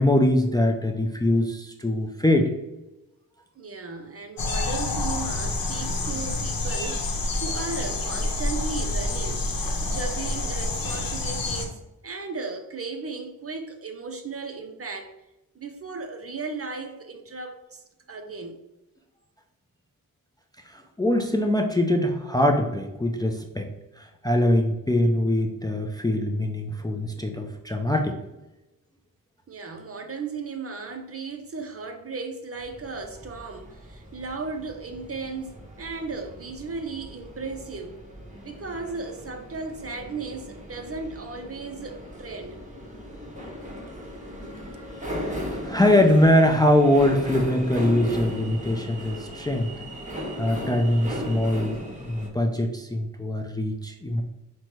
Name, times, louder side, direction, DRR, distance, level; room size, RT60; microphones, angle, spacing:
voice 1, 0.0-2.5 20.7-23.7 24.0-28.2 44.5-44.7 45.1-45.4 45.6-49.7 50.4-54.2, left 1 dB, 10° left, 0.4 m, -23 dB
voice 2, 3.6-9.4 9.8-15.1 15.5-18.6 29.5-38.0 38.4-42.6, right 4 dB, 40° right, 0.6 m, -36 dB
sound 1, 4.4-11.7, left 2 dB, 65° left, 0.8 m, -28 dB
sound 2, 32.6-52.3, equal, 20° right, 1.2 m, -37 dB
5.5 x 2.2 x 3.1 m
cardioid pair, 65°, 37 cm